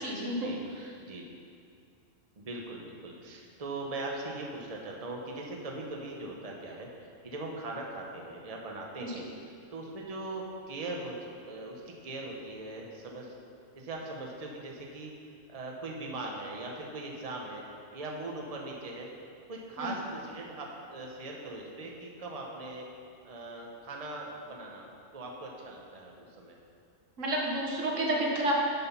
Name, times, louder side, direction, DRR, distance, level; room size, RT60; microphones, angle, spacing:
voice 1, 0.0-0.5 0.8-0.9 9.0-9.2 19.8-19.9 27.2-28.5, right 1 dB, 80° right, -2 dB, 1.7 m, -30 dB
voice 2, 2.4-9.3 9.7-13.3 13.8-15.1 15.5-17.6 17.9-19.1 19.5-22.8 23.2-24.9 25.1-26.6, right 2 dB, 30° right, -1 dB, 1.1 m, -40 dB
9.4 x 6.4 x 5.6 m, 2.3 s
omnidirectional pair, 1.3 m